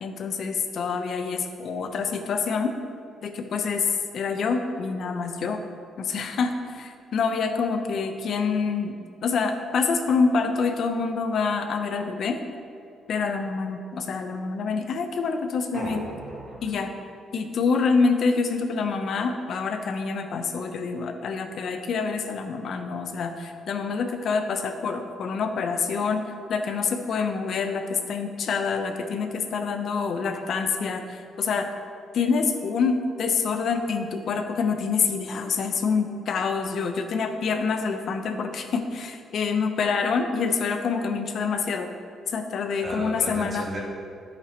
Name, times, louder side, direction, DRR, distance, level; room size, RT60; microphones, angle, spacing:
voice 1, 0.0-2.7 3.2-3.9 4.1-5.6 6.0-8.9 9.2-12.4 13.1-16.0 16.6-16.9 17.3-26.2 26.5-31.7 32.1-41.9 42.3-43.7, left 5 dB, 60° left, 6 dB, 0.8 m, -26 dB
voice 2, 15.7-16.6 42.8-43.8, right 1 dB, 45° right, -3 dB, 2.1 m, -35 dB
10.5 x 8.4 x 3.0 m, 2.6 s
cardioid pair, 90°, 0 cm